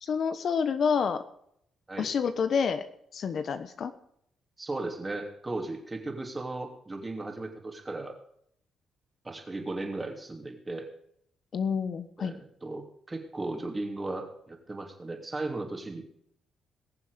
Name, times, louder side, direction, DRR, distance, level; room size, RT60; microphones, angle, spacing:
voice 1, 0.0-1.2 2.0-2.8 3.1-3.9 11.5-12.3, left 6 dB, 55° left, 11 dB, 1.1 m, -28 dB
voice 2, 4.6-8.1 9.2-10.9 12.2-16.0, right 2 dB, 20° right, 4 dB, 3.1 m, -36 dB
21.0 x 7.2 x 5.2 m, 0.70 s
cardioid pair, 90°, 0 cm